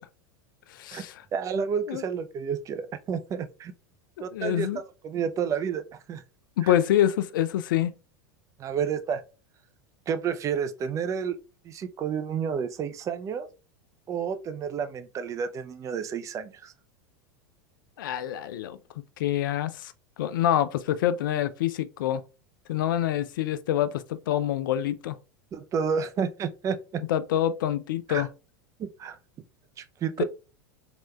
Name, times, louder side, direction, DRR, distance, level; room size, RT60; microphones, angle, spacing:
voice 1, 0.7-1.2 1.9-2.0 4.2-4.8 6.6-7.9 18.0-18.8 19.2-19.9 20.2-22.2 22.7-25.2 27.1-28.3 30.2-30.3, left 11 dB, 75° left, 0.4 m, -26 dB
voice 2, 1.3-3.7 4.2-5.8 6.1-6.2 6.6-6.7 8.6-9.2 10.1-11.4 11.6-13.5 14.1-16.7 25.5-27.0 28.1-28.3 28.8-29.2 29.8-30.2, right 7 dB, 30° right, 0.4 m, -30 dB
3.2 x 2.9 x 2.2 m
hypercardioid pair, 95°, 11 cm